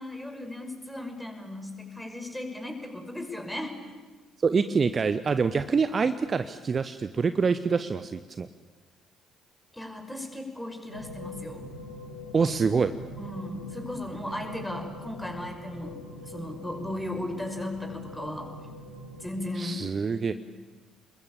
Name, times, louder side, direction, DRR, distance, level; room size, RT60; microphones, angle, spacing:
voice 1, 0.0-3.7 9.7-11.6 13.1-16.0 16.2-18.5 19.2-19.8 20.1-20.3, left 1 dB, 5° left, 5 dB, 5.6 m, -36 dB
voice 2, 4.4-8.5 12.3-12.9 19.6-20.3, right 5 dB, 35° right, 11 dB, 0.9 m, -25 dB
sound 1, 10.9-19.3, left 1 dB, 90° left, 3.1 m, -43 dB
29.5 x 21.5 x 8.6 m, 1.3 s
figure-of-eight pair, 50°, 0 cm